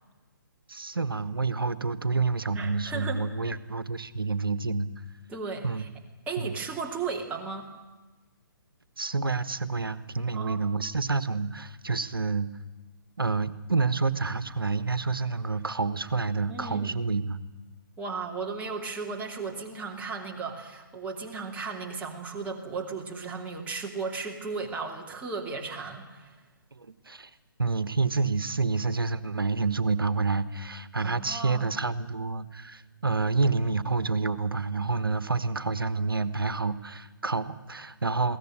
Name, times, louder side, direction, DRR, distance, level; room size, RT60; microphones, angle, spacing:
voice 1, 0.7-4.9 5.6-5.9 6.4-6.6 9.0-12.5 13.2-17.4 26.7-27.3 27.6-38.4, right 4 dB, 80° right, 14 dB, 1.3 m, -28 dB
voice 2, 2.5-3.3 5.3-5.9 6.3-7.7 10.3-10.6 16.5-17.0 18.0-26.4 31.0-31.7, right 4 dB, 10° right, 1 dB, 2.7 m, -35 dB
22.0 x 17.5 x 10.0 m, 1.2 s
figure-of-eight pair, 135°, 12 cm